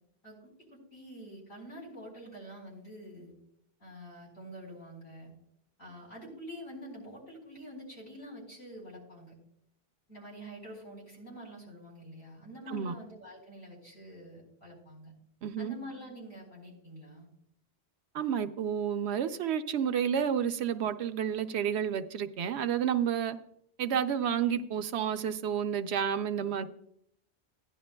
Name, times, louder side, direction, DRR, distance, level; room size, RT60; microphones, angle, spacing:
voice 1, 0.7-3.3 3.8-5.3 5.8-9.4 10.1-15.1 15.6-17.3, equal, 75° left, 4.5 m, -47 dB
voice 2, 15.4-15.7 18.1-23.4 23.8-26.7, right 8 dB, 80° right, 0.9 m, -30 dB
15.5 x 11.0 x 2.2 m
omnidirectional pair, 1.1 m